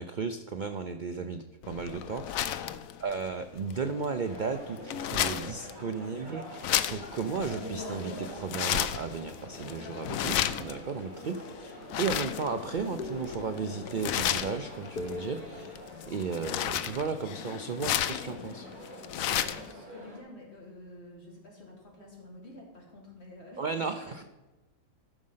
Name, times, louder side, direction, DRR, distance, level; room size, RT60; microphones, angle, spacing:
voice 1, 0.0-2.7 3.0-15.8 16.1-18.7 23.6-24.3, right 5 dB, 75° right, 8 dB, 0.4 m, -35 dB
sound 1, 1.6-19.7, left 11 dB, 70° left, 0.9 m, -34 dB
voice 2, 2.5-2.8 19.1-24.3, left 2 dB, 45° left, -3 dB, 3.3 m, -50 dB
sound 2, 4.2-20.2, equal, 30° right, 3.0 m, -45 dB
sound 3, 13.0-17.5, left 2 dB, 85° left, 1.5 m, -44 dB
13.5 x 6.4 x 5.6 m, 1.1 s
omnidirectional pair, 1.6 m